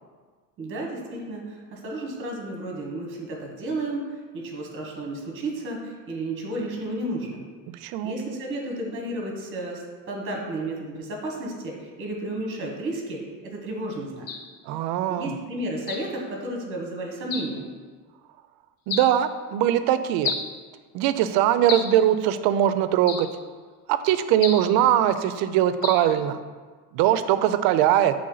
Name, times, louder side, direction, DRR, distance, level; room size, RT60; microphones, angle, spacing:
voice 1, 0.6-7.4 8.0-14.3 15.1-17.7, right 1 dB, 35° right, 0 dB, 1.3 m, -32 dB
voice 2, 7.8-8.2 14.7-15.4 18.9-20.3 20.9-23.3 23.9-26.4 26.9-28.1, right 11 dB, 85° right, 12 dB, 0.5 m, -21 dB
sound 1, 14.3-14.5 15.9-16.1 17.3-17.6 18.9-19.2 20.2-20.5 21.7-22.0 23.1-23.4 24.4-24.7 25.8-26.1, left 5 dB, 45° left, 0.6 m, -31 dB
7.7 x 3.5 x 3.9 m, 1.5 s
cardioid pair, 170°, 36 cm